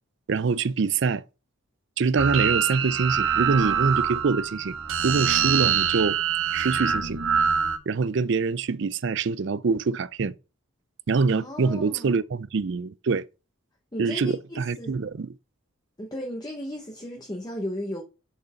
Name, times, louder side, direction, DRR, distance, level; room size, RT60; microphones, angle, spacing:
voice 1, 0.3-1.2 2.0-4.7 5.0-6.2 6.5-7.2 7.9-10.3 11.1-13.2 14.0-15.3, right 4 dB, 60° right, 0.5 m, -25 dB
sound 1, 2.2-7.8, right 7 dB, 85° right, 1.4 m, -24 dB
voice 2, 11.3-12.2 13.9-14.9 16.0-18.0, equal, 20° left, 0.9 m, -35 dB
6.6 x 5.3 x 5.7 m
head